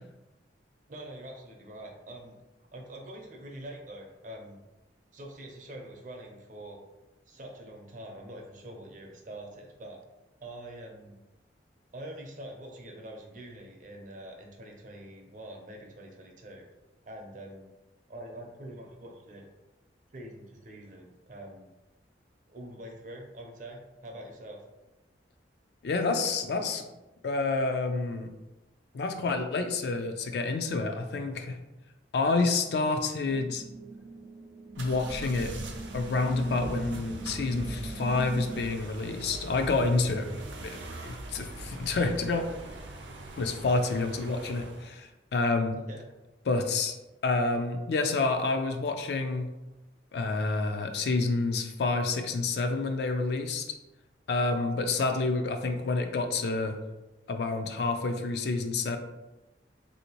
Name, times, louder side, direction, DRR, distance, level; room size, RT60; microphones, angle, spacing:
voice 1, 0.9-2.3 2.7-4.6 5.1-6.8 7.3-10.0 10.4-11.1 11.9-16.6 17.0-17.7 18.1-19.5 20.1-21.7 22.5-24.6 45.9-46.0, right 1 dB, 45° right, 2 dB, 0.6 m, -45 dB
voice 2, 25.8-26.8 27.2-28.3 28.9-31.6 32.1-33.6 34.8-35.5 35.9-40.3 40.6-42.4 43.4-45.8 46.5-47.0 47.2-49.5 50.1-53.7 54.3-56.8 57.3-59.0, left 3 dB, 60° left, 6 dB, 0.4 m, -28 dB
sound 1, 33.2-38.6, right 3 dB, ahead, 0.4 m, -41 dB
sound 2, 34.7-44.9, right 1 dB, 90° right, 0.5 m, -42 dB
3.3 x 2.7 x 2.9 m, 1.0 s
head